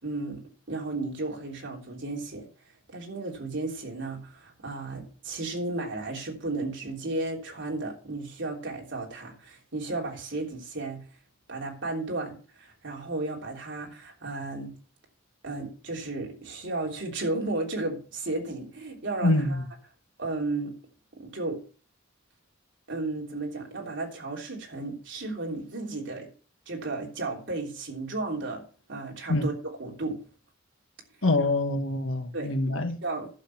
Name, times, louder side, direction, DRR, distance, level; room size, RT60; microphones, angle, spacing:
voice 1, 0.0-0.4 0.7-2.5 2.9-11.0 11.5-14.7 15.4-19.6 20.2-20.7 21.2-21.6 22.9-26.3 26.7-28.6 28.9-29.5 29.8-30.2 32.3-32.5 33.0-33.3, right 2 dB, 65° right, 3.4 m, -34 dB
voice 2, 19.2-19.6 29.3-29.5 31.2-33.0, left 2 dB, 75° left, 1.5 m, -25 dB
11.5 x 6.3 x 5.7 m
head